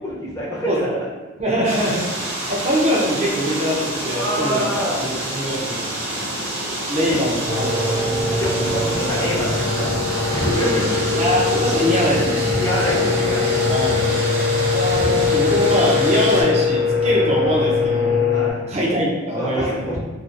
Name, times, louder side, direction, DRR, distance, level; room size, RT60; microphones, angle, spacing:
voice 1, 0.0-0.9 4.1-5.1 6.1-6.4 6.9-7.2 7.8-8.0 8.4-11.2 12.5-13.6 14.1-14.6 15.0-15.1 18.3-18.7 19.3-20.0, equal, 15° left, -7 dB, 0.6 m, -27 dB
voice 2, 1.4-2.0 2.5-4.7 5.0-5.9 6.9-8.1 11.2-12.5 13.7-14.1 14.7-18.2 18.7-19.6, equal, 30° right, -4 dB, 0.6 m, -22 dB
sound 1, 1.6-16.4, right 1 dB, 85° right, 0.8 m, -27 dB
sound 2, 7.5-18.5, left 4 dB, 55° left, 0.5 m, -21 dB
2.5 x 2.4 x 2.5 m, 1.3 s
head